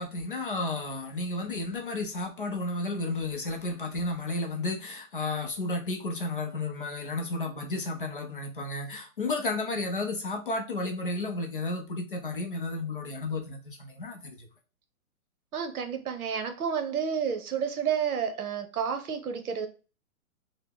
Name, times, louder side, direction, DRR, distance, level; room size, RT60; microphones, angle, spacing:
voice 1, 0.0-14.5, left 2 dB, 40° left, 0.5 m, -32 dB
voice 2, 15.5-19.7, right 7 dB, 75° right, 0.8 m, -30 dB
2.9 x 2.1 x 3.5 m
hypercardioid pair, 170°, 43 cm